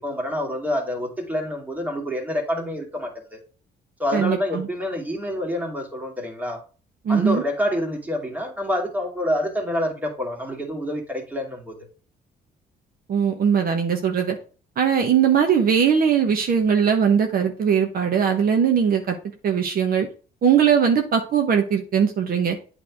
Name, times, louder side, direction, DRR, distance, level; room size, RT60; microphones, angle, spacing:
voice 1, 0.0-3.4 4.0-6.6 7.1-11.8, left 1 dB, 10° right, 2.2 m, -27 dB
voice 2, 4.1-4.7 7.0-7.4 13.1-14.4 14.8-19.1 19.4-20.1 20.4-22.6, right 7 dB, 55° right, 1.1 m, -20 dB
8.5 x 3.5 x 4.7 m
cardioid pair, 105°, 18 cm